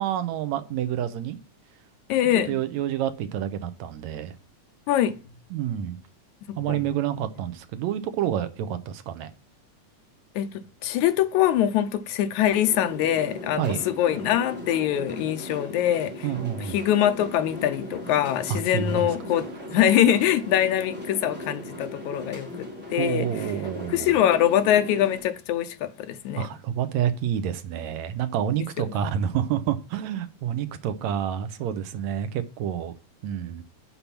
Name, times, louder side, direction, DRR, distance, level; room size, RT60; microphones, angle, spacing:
voice 1, 0.0-1.4 2.5-4.3 5.5-6.0 6.6-9.3 13.6-13.8 16.2-16.8 18.5-19.1 23.0-24.2 26.4-32.9 33.2-33.6, right 9 dB, 75° right, 2.0 m, -28 dB
voice 2, 2.1-2.6 4.9-5.1 6.5-6.8 10.4-10.5 10.8-16.3 16.6-23.5 23.9-26.5, left 11 dB, 80° left, 2.0 m, -23 dB
sound 1, 12.5-25.2, left 1 dB, 5° right, 2.5 m, -38 dB
7.0 x 5.7 x 5.9 m
omnidirectional pair, 3.5 m